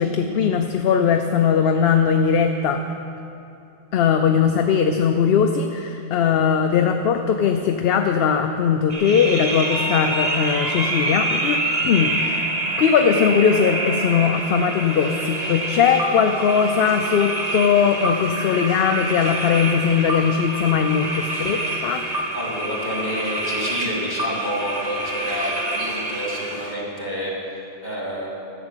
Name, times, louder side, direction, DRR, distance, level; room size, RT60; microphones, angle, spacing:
voice 1, 0.0-2.8 3.9-12.5 12.8-22.0, left 7 dB, 70° left, 5 dB, 0.8 m, -20 dB
sound 1, 8.9-26.7, right 2 dB, 40° right, 1.2 m, -26 dB
voice 2, 22.3-28.4, equal, 45° left, -3 dB, 2.7 m, -29 dB
11.0 x 7.2 x 8.8 m, 2.7 s
omnidirectional pair, 1.0 m